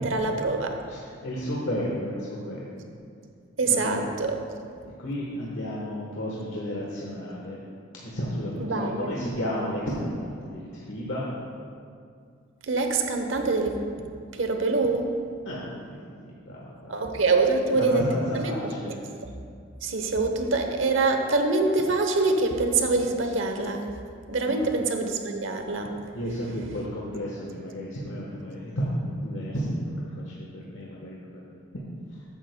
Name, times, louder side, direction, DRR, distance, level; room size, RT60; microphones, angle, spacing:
voice 1, 0.0-0.8 3.6-4.4 8.6-9.1 12.7-13.8 14.3-15.1 16.9-18.8 19.8-23.9 24.3-25.9, right 3 dB, 85° right, 5 dB, 0.9 m, -25 dB
voice 2, 0.9-2.7 3.6-4.0 5.0-7.6 8.0-11.3 15.4-15.8 16.4-17.0 17.6-18.9 24.4-24.7 26.1-29.0 29.2-31.4, equal, 80° left, -5 dB, 1.2 m, -32 dB
13.5 x 8.8 x 2.2 m, 2.3 s
head